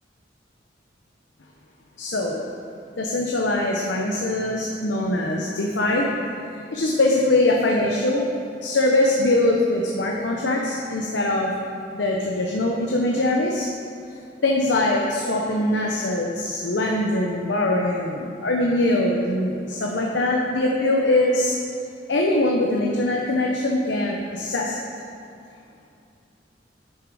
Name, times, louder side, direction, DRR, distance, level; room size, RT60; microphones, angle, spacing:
voice 1, 2.0-2.4 3.0-6.1 6.5-8.3 8.6-11.5 11.9-13.7 14.4-21.5 22.1-24.9, left 1 dB, 75° left, -1 dB, 0.9 m, -22 dB
10.0 x 6.6 x 4.9 m, 2.6 s
head